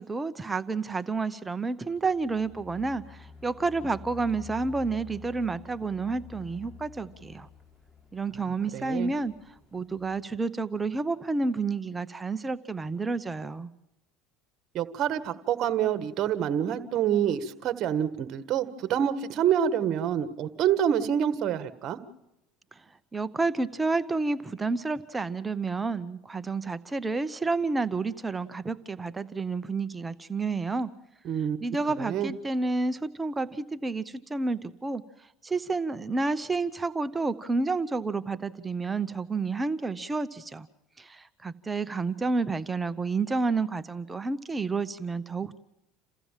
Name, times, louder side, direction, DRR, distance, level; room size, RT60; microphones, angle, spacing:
voice 1, 0.0-7.5 8.1-9.3 9.7-13.7 23.1-30.9 31.6-35.0 35.4-40.7 41.0-45.6, right 3 dB, 15° right, 13 dB, 0.8 m, -30 dB
sound 1, 1.9-10.2, left 5 dB, 20° left, 5.8 m, -49 dB
voice 2, 8.7-9.1 14.7-22.0 31.2-31.6 32.0-32.3, right 9 dB, 50° right, 13 dB, 1.6 m, -27 dB
28.5 x 15.0 x 7.4 m, 0.90 s
supercardioid pair, 105°, 0 cm